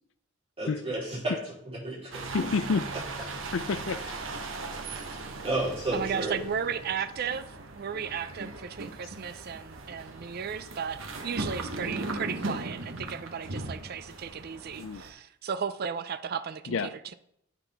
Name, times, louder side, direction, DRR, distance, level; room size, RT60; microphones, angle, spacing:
voice 1, 0.6-1.4 1.7-2.3 5.1-6.4, right 2 dB, 30° right, 3.8 m, -32 dB
sound 1, 2.1-15.1, right 2 dB, 85° right, 1.1 m, -38 dB
voice 2, 2.3-2.9 3.2-4.1 14.8-15.0 16.7-16.9, left 4 dB, 75° left, 0.5 m, -30 dB
voice 3, 5.9-7.4 7.7-16.8, right 7 dB, 50° right, 0.4 m, -34 dB
9.9 x 5.8 x 3.5 m
head